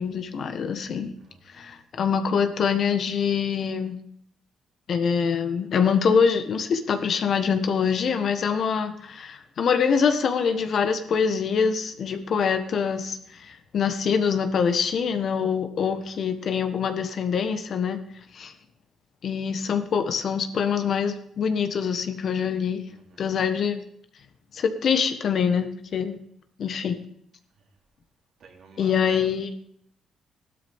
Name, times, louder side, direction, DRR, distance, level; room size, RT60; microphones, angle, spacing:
voice 1, 0.0-1.1 1.5-4.0 4.9-18.0 18.3-18.5 19.2-22.8 23.2-23.8 24.5-26.2 26.6-27.0 28.8-29.5, left 6 dB, 60° left, 7 dB, 1.4 m, -24 dB
voice 2, 15.8-16.1 22.9-23.3 28.4-29.3, right 4 dB, 65° right, 0 dB, 3.2 m, -50 dB
16.0 x 12.5 x 3.6 m, 0.66 s
cardioid pair, 90°, 0 cm